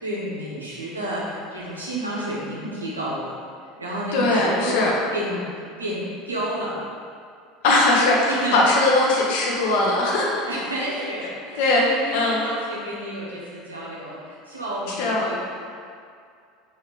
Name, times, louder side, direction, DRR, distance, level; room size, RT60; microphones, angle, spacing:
voice 1, 0.0-3.3 3.8-4.8 5.1-6.8 8.3-8.6 10.4-15.4, right 1 dB, 85° right, -6 dB, 1.4 m, -30 dB
voice 2, 4.1-4.9 7.6-10.2 11.6-12.5 15.0-15.2, left 2 dB, 60° left, -3 dB, 1.3 m, -20 dB
5.0 x 4.5 x 4.8 m, 2.3 s
figure-of-eight pair, 70°, 0 cm